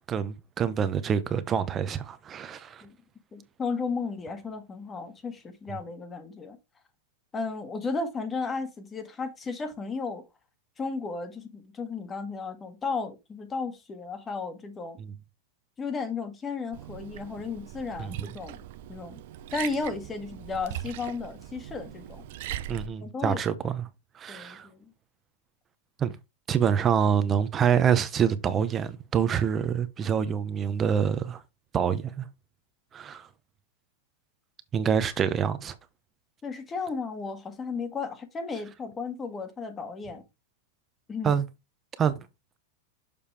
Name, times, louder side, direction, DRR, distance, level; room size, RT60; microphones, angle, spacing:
voice 1, 0.1-2.8 15.0-15.1 18.0-18.3 22.7-23.9 24.1-24.7 26.0-26.2 26.5-31.4 31.7-32.3 32.9-33.3 34.7-35.7 41.2-41.4 42.0-42.2, right 7 dB, 25° right, 1.0 m, -26 dB
voice 2, 3.3-6.6 7.3-10.2 10.8-15.0 15.8-18.6 18.9-19.2 19.5-22.2 23.0-23.4 24.3-24.9 36.4-40.2 41.1-41.3, left 4 dB, 20° left, 1.8 m, -34 dB
Liquid, 16.7-22.9, right 11 dB, 65° right, 0.7 m, -40 dB
6.9 x 5.3 x 3.4 m
hypercardioid pair, 115°, 0 cm